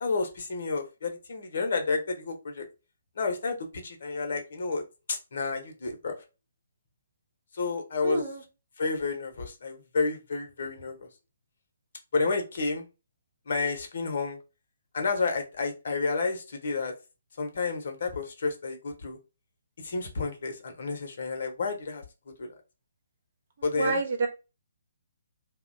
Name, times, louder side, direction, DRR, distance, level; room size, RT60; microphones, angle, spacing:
voice 1, 0.0-2.6 3.2-4.8 5.1-6.2 7.5-8.2 8.8-11.1 12.1-12.8 13.5-14.4 14.9-16.9 17.4-19.2 19.8-22.0 22.4-22.5 23.6-24.0, left 4 dB, 60° left, 5 dB, 0.8 m, -30 dB
voice 2, 8.0-8.4 23.8-24.3, right 3 dB, 55° right, 2 dB, 0.8 m, -28 dB
2.8 x 2.1 x 2.5 m, 0.28 s
figure-of-eight pair, 135°, 0 cm